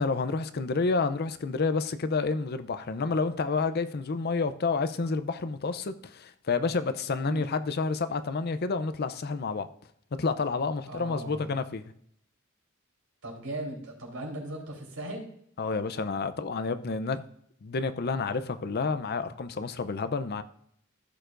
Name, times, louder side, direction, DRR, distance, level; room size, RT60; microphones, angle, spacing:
voice 1, 0.0-9.7 10.2-11.9 15.6-17.2 17.6-20.4, left 4 dB, 45° left, 0.5 m, -29 dB
voice 2, 10.8-11.5 13.2-15.3, right 1 dB, 80° right, 3.7 m, -38 dB
15.0 x 6.8 x 2.5 m
head